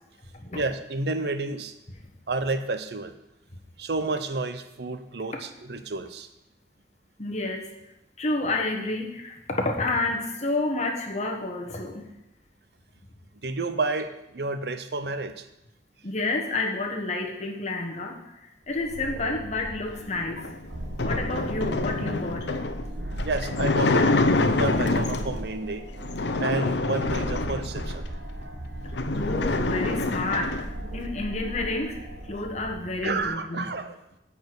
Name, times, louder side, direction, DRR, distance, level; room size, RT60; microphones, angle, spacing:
voice 1, 0.5-1.7 2.3-3.1 3.8-6.3 13.4-15.5 23.2-24.1 24.4-25.9 26.4-28.0 33.0-34.0, right 3 dB, 65° right, 10 dB, 0.7 m, -30 dB
voice 2, 7.2-7.7 8.2-12.0 16.0-18.1 18.7-20.4 21.0-22.6 29.1-30.6 30.9-32.0 32.3-33.8, left 2 dB, 40° left, 2 dB, 1.4 m, -29 dB
sound 1, 18.7-33.3, right 1 dB, 85° right, 1.1 m, -37 dB
sound 2, 20.3-25.4 26.0-28.1 28.5-28.6 28.8-30.7, left 2 dB, 80° left, 0.7 m, -26 dB
10.0 x 4.9 x 8.0 m, 0.90 s
head